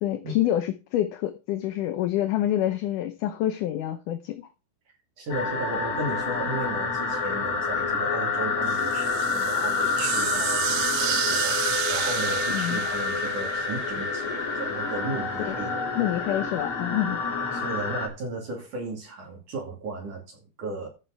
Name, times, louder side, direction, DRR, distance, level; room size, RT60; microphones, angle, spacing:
voice 1, 0.0-4.4 12.5-12.9 15.4-15.6 16.0-17.2, left 12 dB, 75° left, 2.1 m, -27 dB
voice 2, 5.2-15.7 17.5-20.9, right 2 dB, 55° right, 4.0 m, -35 dB
sound 1, 5.3-18.1, left 4 dB, 45° left, 3.3 m, -28 dB
sound 2, 8.6-14.5, right 13 dB, 75° right, 2.0 m, -32 dB
14.5 x 7.9 x 3.5 m
omnidirectional pair, 4.3 m